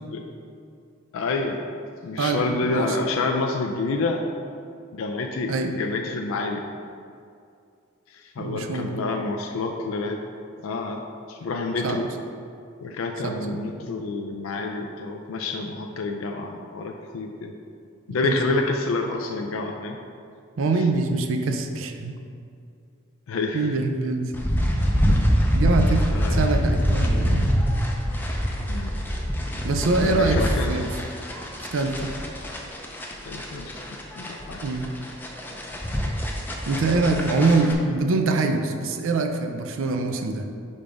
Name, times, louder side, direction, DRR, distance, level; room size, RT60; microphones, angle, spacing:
voice 1, 1.1-1.6 2.0-4.3 4.9-6.6 8.1-10.2 10.6-11.0 11.3-12.1 12.8-17.5 18.1-20.0 23.3-23.7 26.1-26.4 28.7-29.0 30.0-30.7 33.2-33.8 34.2-34.6, left 3 dB, 85° left, 2 dB, 0.4 m, -28 dB
voice 2, 2.2-3.0 5.5-5.7 8.4-9.0 11.8-12.0 13.2-13.6 18.2-18.3 20.6-22.2 23.5-24.3 25.5-27.4 29.6-30.9 31.7-32.1 34.6-34.9 36.7-40.5, right 3 dB, 75° right, 5 dB, 0.5 m, -24 dB
sound 1, 24.3-37.7, equal, 10° left, 0.5 m, -25 dB
5.3 x 3.4 x 5.1 m, 2.4 s
head